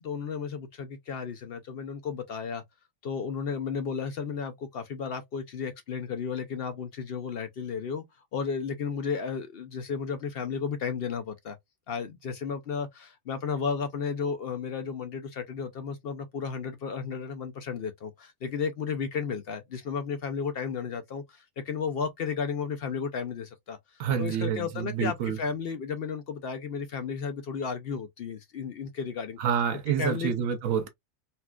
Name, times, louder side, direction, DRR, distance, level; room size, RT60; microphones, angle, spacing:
voice 1, 0.0-2.6 3.0-8.0 8.3-11.6 11.9-29.4 29.9-30.4, left 6 dB, 60° left, 0.7 m, -33 dB
voice 2, 24.0-25.4 29.4-30.9, right 8 dB, 90° right, 1.1 m, -28 dB
4.2 x 2.3 x 2.2 m
omnidirectional pair, 1.4 m